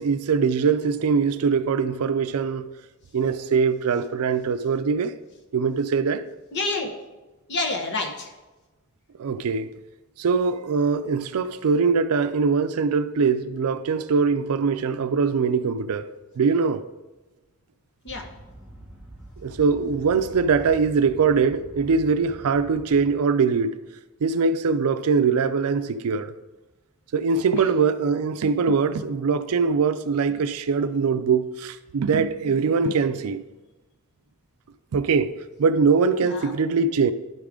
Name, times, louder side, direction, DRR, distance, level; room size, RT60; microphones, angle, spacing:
voice 1, 0.0-2.7 3.1-5.1 5.5-6.2 9.2-9.7 10.2-16.1 16.4-16.8 19.4-23.7 24.2-26.3 27.1-33.4 34.9-35.3 35.6-37.1, right 5 dB, 75° right, 0.4 m, -22 dB
voice 2, 6.2-6.9 7.5-8.3 18.0-18.3 27.6-27.7 36.2-36.5, left 3 dB, 50° left, 1.0 m, -29 dB
sound 1, 18.1-23.1, right 1 dB, 5° right, 1.1 m, -44 dB
11.0 x 3.6 x 5.0 m
head